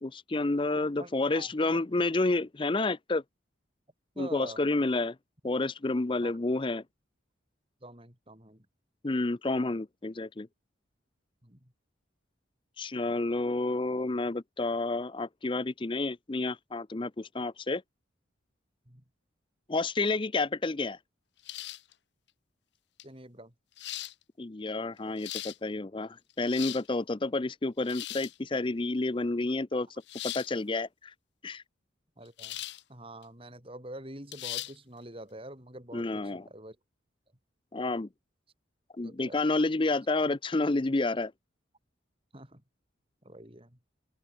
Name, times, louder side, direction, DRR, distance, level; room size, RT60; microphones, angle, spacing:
voice 1, 0.0-3.2 4.2-5.2 5.4-6.8 9.0-10.5 12.8-17.8 19.7-21.0 24.4-29.9 30.2-31.1 31.4-31.6 35.9-36.4 37.7-38.1 39.0-41.3, left 2 dB, 25° left, 0.5 m, -30 dB
voice 2, 1.0-1.8 4.1-4.6 6.2-6.4 7.8-8.7 11.4-11.7 18.9-19.0 23.0-23.5 32.2-32.6 32.9-36.8 39.0-39.4 42.3-42.6 43.2-43.8, right 1 dB, 30° right, 6.1 m, -46 dB
sound 1, 21.4-21.9 23.0-23.1 23.8-24.1 25.0-25.6 26.3-26.9 27.8-28.4 30.1-30.5 32.4-32.8 33.2-33.3 34.3-34.7, left 15 dB, 60° left, 0.8 m, -38 dB
open air
head